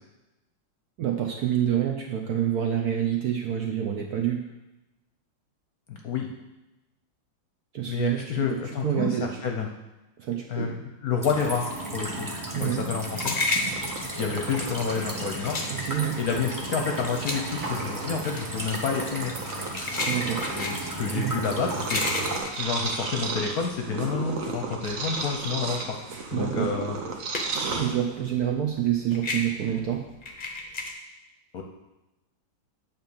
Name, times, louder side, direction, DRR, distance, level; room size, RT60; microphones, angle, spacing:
voice 1, 1.0-4.4 7.7-8.2 8.5-9.4 10.2-10.7 12.5-12.9 15.7-16.2 20.1-20.4 21.1-21.4 26.3-26.7 27.8-30.0, right 10 dB, 70° right, 2 dB, 0.9 m, -27 dB
voice 2, 5.9-6.3 7.9-9.7 10.5-11.7 11.9-12.3 12.6-13.4 14.1-15.6 16.2-19.3 20.5-22.0 22.6-26.0 26.3-27.0 31.5-31.6, left 5 dB, 60° left, 2 dB, 1.0 m, -29 dB
sound 1, 11.2-22.4, right 1 dB, 25° right, 0.4 m, -35 dB
sound 2, 12.5-24.0 24.4-27.8 28.1-30.9, left 3 dB, 45° left, 0.6 m, -33 dB
Purr, 13.4-28.4, right 4 dB, 55° right, 1.1 m, -35 dB
8.7 x 3.9 x 7.1 m, 1.0 s
omnidirectional pair, 2.2 m